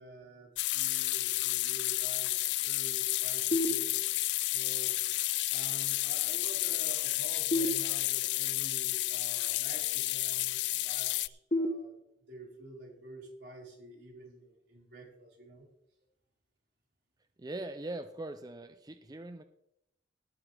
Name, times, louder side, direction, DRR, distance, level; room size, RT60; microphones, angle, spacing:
voice 1, 0.0-4.2 4.5-5.0 5.5-11.9 12.3-15.7, right 1 dB, 65° right, -3 dB, 5.0 m, -49 dB
sound 1, 0.6-11.3, left 19 dB, 70° left, 0.3 m, -31 dB
sound 2, 3.5-4.5 7.5-8.5 11.5-12.5, left 1 dB, 40° left, 0.9 m, -34 dB
voice 2, 17.4-19.4, right 2 dB, 20° right, 8 dB, 0.5 m, -41 dB
18.5 x 8.6 x 3.4 m, 0.80 s
head